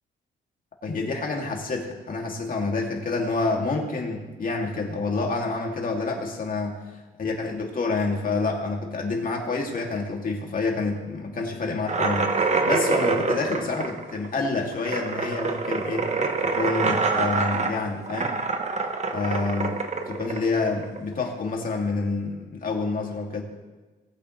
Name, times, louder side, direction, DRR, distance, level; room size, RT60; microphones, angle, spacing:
voice 1, 0.8-6.8 7.2-12.3 12.6-16.1 16.4-18.3 19.1-23.4, left 3 dB, 45° left, 0 dB, 2.6 m, -28 dB
sound 1, 11.9-21.2, right 4 dB, 35° right, 1.2 m, -26 dB
19.0 x 8.7 x 3.3 m, 1.2 s
cardioid pair, 90°, 20 cm